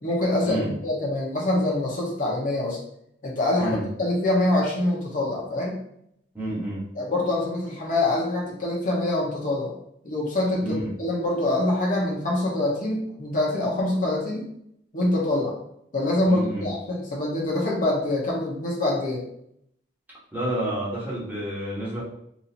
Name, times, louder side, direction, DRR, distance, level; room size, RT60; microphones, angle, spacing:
voice 1, 0.0-2.8 3.2-5.8 6.9-9.7 10.0-14.5 14.9-15.5 15.9-19.2, left 1 dB, 50° left, -3 dB, 1.0 m, -25 dB
voice 2, 6.3-6.8 10.6-10.9 16.3-16.7 20.3-22.0, right 1 dB, 10° right, -9 dB, 1.4 m, -29 dB
4.0 x 2.7 x 2.8 m, 0.74 s
head